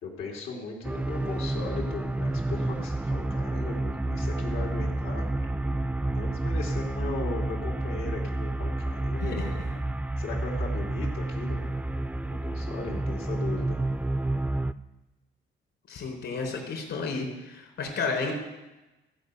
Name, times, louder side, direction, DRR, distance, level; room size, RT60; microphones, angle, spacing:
voice 1, 0.0-5.3 6.1-9.6 10.2-13.8, left 3 dB, 90° left, -1 dB, 2.7 m, -38 dB
sound 1, 0.8-14.7, right 2 dB, 5° right, 0.4 m, -30 dB
voice 2, 15.9-18.3, left 4 dB, 70° left, 0 dB, 4.1 m, -32 dB
15.5 x 5.3 x 8.0 m, 1.0 s
cardioid pair, 90°, 20 cm